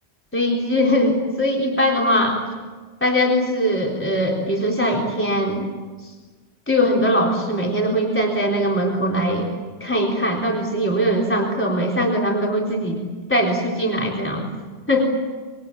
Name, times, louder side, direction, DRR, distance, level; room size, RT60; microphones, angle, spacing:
voice 1, 0.3-2.4 3.0-5.7 6.7-9.5 9.8-13.0 13.3-14.5 14.9-15.1, equal, 10° left, -1 dB, 3.8 m, -21 dB
26.5 x 22.5 x 8.9 m, 1.4 s
omnidirectional pair, 1.1 m